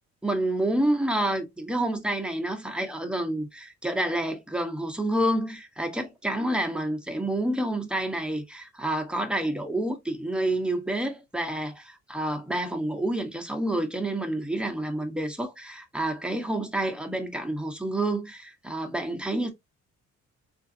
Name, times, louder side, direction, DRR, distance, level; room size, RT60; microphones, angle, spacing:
voice 1, 0.2-19.5, right 1 dB, 5° right, 0.9 m, -28 dB
3.7 x 2.6 x 2.7 m
cardioid pair, 90°, 30 cm